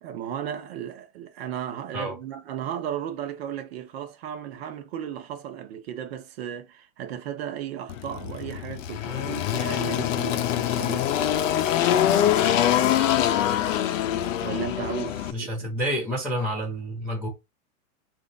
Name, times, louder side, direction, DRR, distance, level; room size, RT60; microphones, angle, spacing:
voice 1, 0.0-11.3 14.4-15.7, right 9 dB, 45° right, 0.8 m, -35 dB
Engine, 7.9-15.3, left 11 dB, 60° left, 0.6 m, -24 dB
voice 2, 15.3-17.3, equal, ahead, 0.3 m, -29 dB
3.0 x 2.6 x 3.8 m
hypercardioid pair, 150°, 43 cm